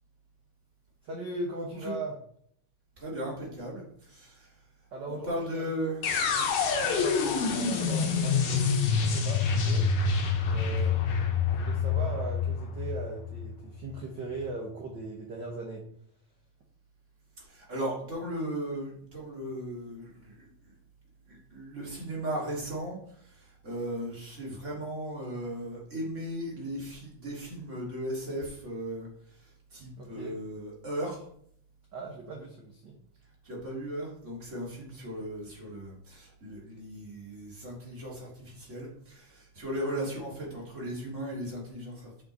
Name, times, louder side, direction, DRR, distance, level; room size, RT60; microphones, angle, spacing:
voice 1, 1.0-2.2 4.9-5.7 6.7-9.9 10.5-11.1 11.5-15.8 30.0-30.4 31.9-33.0, right 2 dB, 75° right, 0 dB, 1.0 m, -39 dB
voice 2, 3.0-4.5 5.1-6.5 7.2-7.5 10.5-11.0 17.4-20.5 21.3-31.3 33.4-42.2, right 1 dB, 25° right, -4 dB, 2.1 m, -37 dB
sound 1, 6.0-14.0, left 5 dB, 85° left, 2.5 m, -27 dB
6.1 x 6.0 x 4.0 m, 0.65 s
omnidirectional pair, 3.5 m